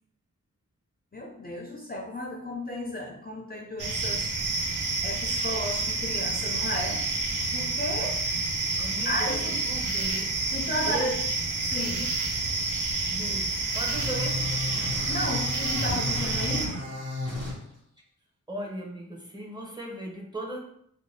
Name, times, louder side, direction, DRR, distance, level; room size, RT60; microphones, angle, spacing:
voice 1, 1.1-4.3 5.0-7.0 7.5-8.2 9.0-9.6 10.5-11.1 11.6-12.0 15.1-16.8, left 1 dB, 30° left, 0 dB, 0.4 m, -33 dB
sound 1, 3.8-16.7, right 3 dB, 75° right, 0.5 m, -29 dB
voice 2, 8.8-10.3 10.9-11.1 11.9-12.1 13.1-15.1 18.5-20.6, right 1 dB, 15° right, -2 dB, 0.6 m, -38 dB
sound 2, 13.9-17.5, left 2 dB, 50° right, 1.1 m, -33 dB
2.6 x 2.2 x 3.2 m, 0.70 s
wide cardioid pair, 55°, 32 cm